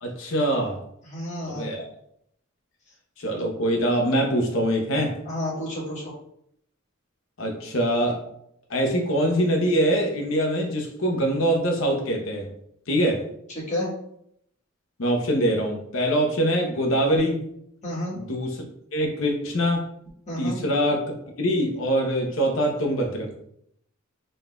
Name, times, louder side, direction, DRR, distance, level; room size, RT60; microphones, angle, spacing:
voice 1, 0.0-0.8 1.4-1.8 3.2-5.2 7.4-8.2 8.7-12.5 12.9-13.2 15.0-17.4 18.1-18.6 18.9-19.9 20.4-21.0 21.4-23.3, equal, 75° left, 2 dB, 0.8 m, -23 dB
voice 2, 1.0-1.7 5.2-6.0 13.5-13.9 17.8-18.2 20.3-20.6, left 1 dB, 35° left, -6 dB, 1.4 m, -30 dB
4.0 x 3.7 x 2.2 m, 0.73 s
head